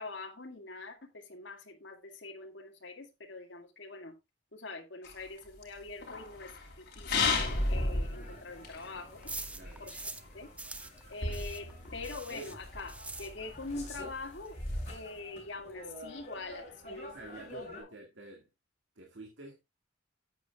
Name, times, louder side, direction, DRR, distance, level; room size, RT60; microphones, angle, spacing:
voice 1, 0.0-4.1 4.5-6.5 6.8-9.2 9.8-10.5 11.1-14.6 14.9-17.2 17.5-17.7, left 3 dB, 70° left, 2.0 m, -44 dB
sound 1, 5.0-9.8 10.3-10.4 10.6-10.7 11.2-15.0, left 3 dB, 55° left, 3.4 m, -34 dB
sound 2, 7.4-17.8, left 1 dB, 35° left, 6.3 m, -50 dB
sound 3, 7.4-10.3 10.6-13.8 14.0-14.1 14.5-14.6 14.7-15.2, right 2 dB, 5° right, 0.6 m, -45 dB
voice 2, 9.5-9.9 17.1-18.5 19.0-19.6, right 2 dB, 75° right, 2.1 m, -50 dB
13.0 x 8.7 x 2.3 m
head